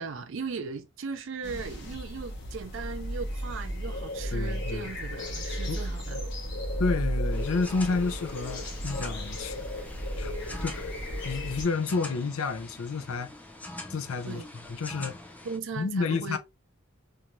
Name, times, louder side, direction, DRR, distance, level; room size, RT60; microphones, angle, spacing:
voice 1, 0.0-6.3 14.3-14.5 15.4-16.4, right 5 dB, 60° right, 0.4 m, -38 dB
sound 1, 1.4-11.6, equal, 55° left, 0.9 m, -34 dB
voice 2, 4.3-4.8 5.7-5.8 6.8-9.7 10.2-10.3 10.6-10.9 11.2-13.3 13.9-14.4 14.7-15.2 15.8-16.4, left 4 dB, 75° left, 0.5 m, -30 dB
sound 2, 7.3-15.6, left 1 dB, 5° left, 0.3 m, -44 dB
2.7 x 2.3 x 2.9 m
head